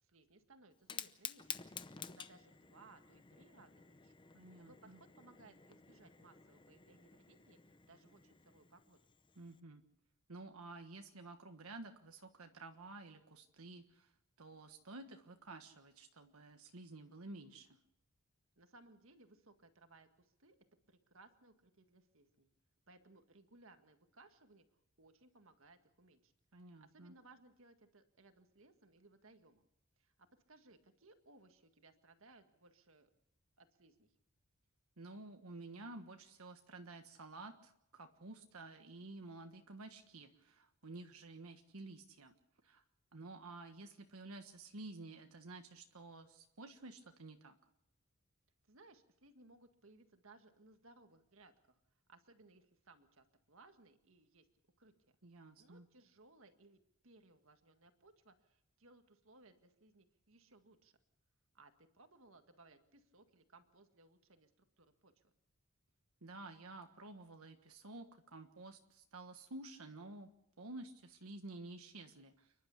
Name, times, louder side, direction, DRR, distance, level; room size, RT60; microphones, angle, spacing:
voice 1, 0.0-4.1 4.7-9.0 18.6-20.6 20.9-22.5 22.9-26.3 26.8-29.7 30.0-33.1 33.6-34.1 48.7-51.8 52.1-54.5 54.8-55.1 55.6-60.9 61.5-65.3, right 2 dB, 65° right, 7 dB, 1.8 m, -64 dB
Fire, 0.7-9.6, left 7 dB, 20° left, 0.7 m, -52 dB
voice 2, 4.3-5.0 9.4-9.8 10.3-14.1 14.4-17.8 26.5-27.1 35.0-42.3 42.6-42.8 43.1-47.5 55.2-55.8 66.2-70.3 70.6-72.5, right 2 dB, 85° right, 5 dB, 1.5 m, -52 dB
29.5 x 11.5 x 8.3 m, 0.79 s
head